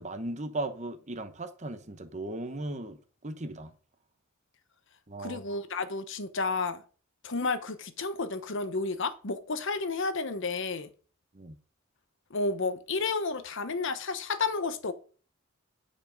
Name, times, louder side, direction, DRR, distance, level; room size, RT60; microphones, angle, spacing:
voice 1, 0.0-3.7 5.1-5.6 11.3-11.6, right 2 dB, 35° right, 1.0 m, -37 dB
voice 2, 5.2-6.8 7.2-10.9 12.3-14.9, left 3 dB, 60° left, 0.9 m, -31 dB
9.5 x 5.2 x 5.2 m
head